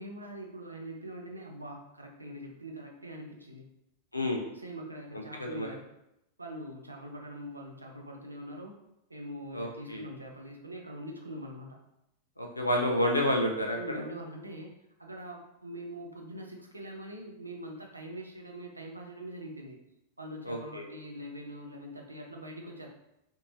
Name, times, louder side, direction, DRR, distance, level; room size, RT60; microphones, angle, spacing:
voice 1, 0.0-3.7 4.6-5.8 6.4-8.8 9.1-11.8 13.7-14.7 15.0-19.8 20.2-22.9, right 1 dB, 85° right, 1 dB, 0.5 m, -43 dB
voice 2, 4.1-4.4 5.1-5.7 9.5-10.0 12.4-14.0 20.4-20.9, left 1 dB, 85° left, 1 dB, 0.4 m, -30 dB
3.5 x 2.8 x 2.8 m, 0.86 s
figure-of-eight pair, 90°, 0 cm